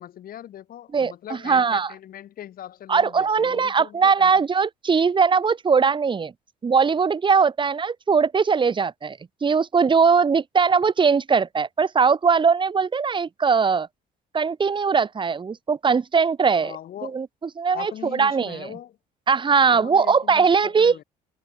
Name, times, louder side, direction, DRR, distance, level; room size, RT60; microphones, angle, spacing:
voice 1, 0.0-4.3 16.6-17.2 17.7-19.0 19.7-21.0, left 11 dB, 60° left, 5.6 m, -40 dB
voice 2, 0.9-1.9 2.9-6.3 6.6-13.9 14.3-16.8 17.0-17.3 17.6-18.7 19.3-21.0, right 5 dB, 30° right, 2.0 m, -20 dB
cardioid pair, 110°, 17 cm